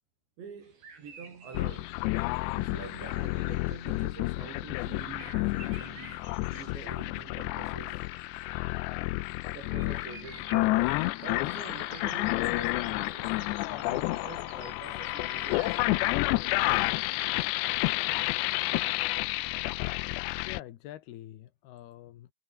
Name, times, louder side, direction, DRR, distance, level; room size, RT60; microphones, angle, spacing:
voice 1, 0.4-2.0 2.5-8.1 9.1-9.2 9.5-16.8, right 6 dB, 85° right, 7.4 m, -47 dB
sound 1, 0.6-15.9, right 4 dB, 60° right, 8.5 m, -53 dB
sound 2, 1.5-20.6, left 21 dB, 90° left, 2.9 m, -30 dB
voice 2, 20.4-22.3, left 13 dB, 70° left, 3.2 m, -46 dB
omnidirectional pair, 5.0 m